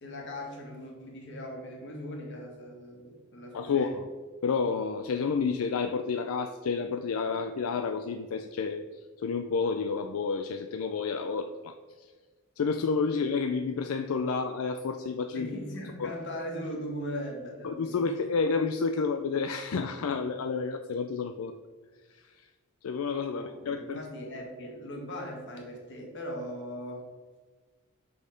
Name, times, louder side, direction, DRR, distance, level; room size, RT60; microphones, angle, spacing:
voice 1, 0.0-3.9 15.3-18.1 23.3-27.0, equal, 55° left, 0 dB, 1.8 m, -39 dB
voice 2, 3.5-4.0 4.4-8.9 9.2-12.1 12.6-15.5 16.0-16.2 17.6-21.5 22.1-22.5 22.8-24.0, left 5 dB, 80° left, 8 dB, 0.4 m, -30 dB
6.4 x 5.4 x 5.1 m, 1.4 s
head